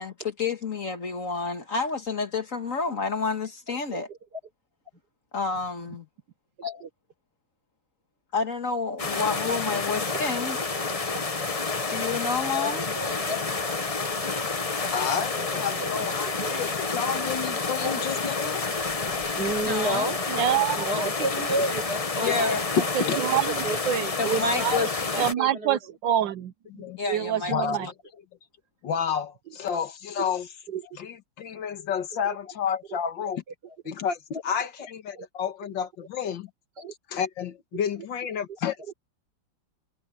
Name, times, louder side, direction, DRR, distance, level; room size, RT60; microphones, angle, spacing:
voice 1, 0.0-4.1 5.3-6.1 8.3-10.6 11.9-12.9 19.6-20.1 22.2-22.6 24.2-25.0 27.0-27.5, left 4 dB, 45° left, 1.9 m, -29 dB
voice 2, 6.6-6.9 11.1-11.2 12.5-13.4 15.8-15.9 16.2-16.6 17.1-17.2 17.8-18.0 18.4-18.5 18.9-19.1 19.4-20.2 20.8-22.6 23.1-23.4 23.6-23.8 24.2-25.8 29.5-29.6 30.2-30.3 30.7-31.0 32.2-32.4 35.1-35.3 36.8-36.9 37.7-37.8 38.9-39.0, right 2 dB, 60° right, 5.6 m, -31 dB
sound 1, 9.0-25.3, left 4 dB, 25° left, 0.8 m, -29 dB
voice 3, 14.9-18.6 21.4-21.7 22.2-22.3 23.0-23.2 25.4-25.5 26.7-27.0 27.5-27.9 28.8-30.5 31.0-33.4 33.9-36.5 37.1-38.9, left 7 dB, 75° left, 2.0 m, -31 dB
voice 4, 20.3-21.1 23.2-23.6 23.8-24.1 25.2-27.9, right 10 dB, 75° right, 1.5 m, -26 dB
omnidirectional pair, 2.0 m